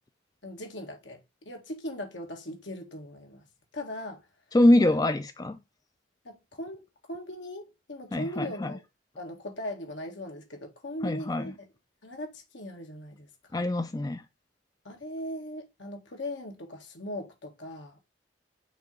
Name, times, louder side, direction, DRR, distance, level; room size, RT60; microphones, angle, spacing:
voice 1, 0.4-3.5 3.7-4.3 4.9-5.0 6.2-8.8 9.2-11.7 12.0-13.6 14.9-18.0, left 1 dB, 80° left, 1.8 m, -39 dB
voice 2, 4.5-5.6 8.1-8.7 11.0-11.5 13.5-14.2, left 1 dB, 20° left, 0.4 m, -24 dB
5.9 x 3.0 x 5.3 m
head